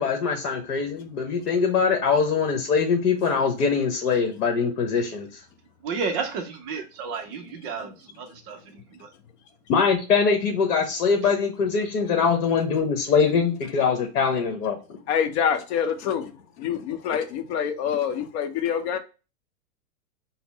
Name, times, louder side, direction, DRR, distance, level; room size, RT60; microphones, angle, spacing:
voice 1, 0.0-5.3 9.7-14.8, left 5 dB, 70° left, 1.0 m, -23 dB
voice 2, 5.8-7.2 7.6-7.9 8.2-8.6, right 5 dB, 25° right, 0.4 m, -30 dB
voice 3, 15.1-16.3 16.6-19.0, left 8 dB, 45° left, 0.7 m, -26 dB
4.1 x 2.0 x 3.9 m
hypercardioid pair, 130°, 45 cm